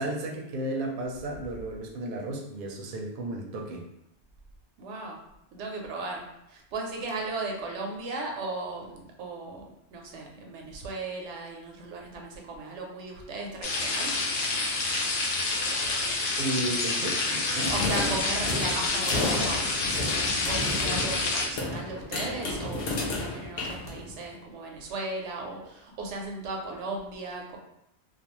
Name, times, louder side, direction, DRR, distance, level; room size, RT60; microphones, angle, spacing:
voice 1, 0.0-3.8 16.4-17.7, right 2 dB, 60° right, 0 dB, 0.6 m, -33 dB
voice 2, 4.8-5.2 5.5-14.2 17.7-27.6, right 3 dB, 90° right, 0 dB, 0.9 m, -36 dB
sound 1, 13.6-21.5, left 3 dB, 90° left, 0.9 m, -28 dB
sound 2, 17.6-24.4, left 2 dB, 65° left, 0.7 m, -32 dB
2.4 x 2.2 x 2.9 m, 0.81 s
omnidirectional pair, 1.2 m